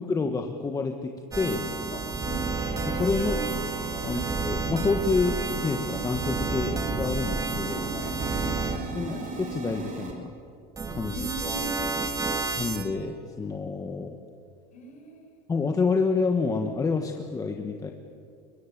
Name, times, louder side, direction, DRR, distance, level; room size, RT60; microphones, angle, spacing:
voice 1, 0.0-1.7 2.9-3.4 4.0-7.9 8.9-10.3 10.9-11.3 12.6-14.1 15.5-17.9, left 4 dB, 15° left, 4 dB, 1.2 m, -28 dB
sound 1, 1.3-8.8 10.8-12.9, right 3 dB, 15° right, 1.8 m, -30 dB
voice 2, 1.9-2.5 3.2-3.4 4.0-4.3 7.5-9.2 11.1-12.5 14.7-15.4, right 1 dB, 35° left, 4 dB, 5.2 m, -39 dB
Bowed string instrument, 2.2-7.3, right 8 dB, 75° right, 1.5 m, -40 dB
sound 2, 2.9-3.0 3.3-3.4 3.7-3.9 4.2-10.1, right 4 dB, 40° right, 4.3 m, -39 dB
22.0 x 22.0 x 9.9 m, 2.4 s
cardioid pair, 145°, 21 cm